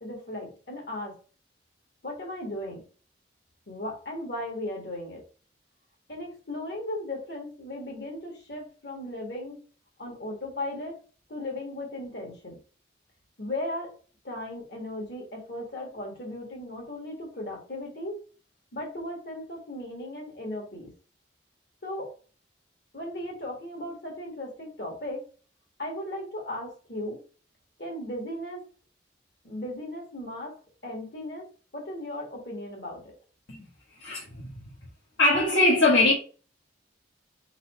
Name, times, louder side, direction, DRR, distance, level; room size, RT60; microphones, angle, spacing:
voice 1, 0.0-1.1 2.0-2.8 3.7-5.2 6.1-9.6 10.0-11.0 11.3-12.6 13.4-13.9 14.2-18.2 18.7-20.9 21.8-22.1 22.9-25.3 25.8-27.2 27.8-28.6 29.4-30.5 30.8-31.5 31.7-33.1, left 1 dB, 60° left, 1.6 m, -36 dB
voice 2, 34.0-34.7 35.2-36.1, left 2 dB, 75° left, 1.2 m, -22 dB
3.9 x 2.8 x 4.4 m
head